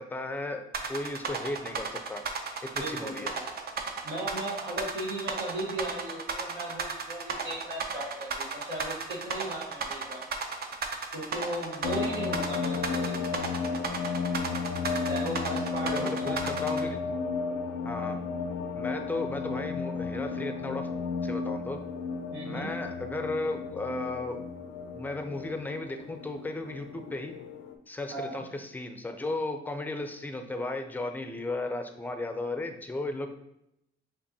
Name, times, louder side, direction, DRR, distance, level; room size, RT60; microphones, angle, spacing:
voice 1, 0.0-2.2 2.6-3.3 15.8-17.1 17.8-18.2 18.7-20.9 21.2-21.8 22.4-24.4 24.9-27.4 27.9-33.3, left 2 dB, 10° left, 6 dB, 0.4 m, -35 dB
sound 1, 0.7-16.8, right 5 dB, 50° right, 0.6 m, -34 dB
voice 2, 2.8-3.3 4.0-10.2 11.1-13.4 15.1-16.5 16.9-17.0 22.3-22.7 28.1-28.3, right 1 dB, 85° right, -3 dB, 1.2 m, -37 dB
sound 2, 11.8-27.7, left 5 dB, 70° left, 0.4 m, -33 dB
5.2 x 2.5 x 2.7 m, 0.82 s
cardioid pair, 90°, 20 cm